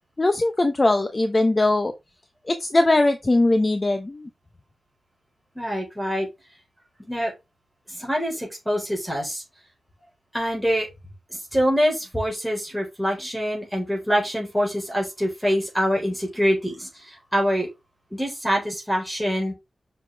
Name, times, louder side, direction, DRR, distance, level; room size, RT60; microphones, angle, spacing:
voice 1, 0.2-1.9 2.5-4.3, left 2 dB, 25° left, 0.8 m, -20 dB
voice 2, 5.5-6.3 7.0-7.3 7.9-9.4 10.3-10.9 11.3-17.7 18.1-19.5, equal, ahead, 4.3 m, -25 dB
7.5 x 5.8 x 3.4 m
wide cardioid pair, 130°, 0 cm